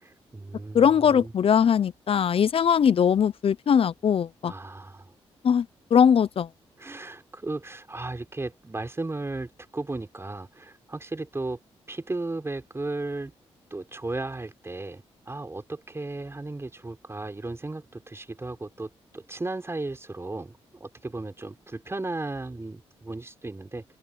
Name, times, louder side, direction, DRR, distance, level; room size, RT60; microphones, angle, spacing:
voice 1, 0.0-1.3 4.4-5.1 6.8-11.6 11.9-13.3 13.7-23.8, right 2 dB, 25° right, 4.6 m, -35 dB
voice 2, 0.7-4.5 5.4-5.7 5.9-6.5, left 7 dB, 60° left, 0.8 m, -20 dB
open air
cardioid pair, 65°, 11 cm